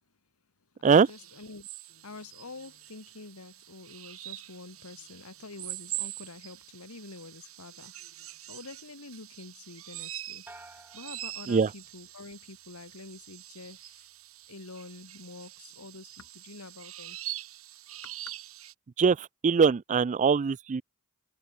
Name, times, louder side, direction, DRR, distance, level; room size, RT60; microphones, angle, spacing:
voice 1, 0.7-10.4 10.7-14.1 14.5-17.2 18.0-18.3, left 3 dB, 85° left, 1.6 m, -47 dB
sound 1, 1.1-18.7, right 15 dB, 70° right, 3.4 m, -44 dB
sound 2, 10.5-12.2 12.6-13.2, right 2 dB, 10° right, 1.4 m, -54 dB
voice 2, 19.0-20.8, right 5 dB, 35° right, 0.3 m, -22 dB
head